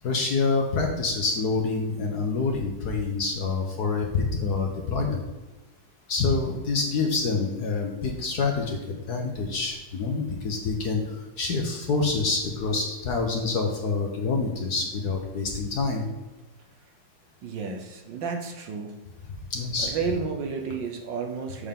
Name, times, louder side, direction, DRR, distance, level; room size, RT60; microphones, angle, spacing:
voice 1, 0.0-5.2 6.1-11.0 11.4-16.1 19.5-19.9, left 4 dB, 55° left, 1 dB, 1.3 m, -27 dB
voice 2, 17.4-19.0 19.8-21.7, right 5 dB, 65° right, 4 dB, 1.5 m, -32 dB
7.0 x 6.9 x 3.7 m, 1.2 s
omnidirectional pair, 2.4 m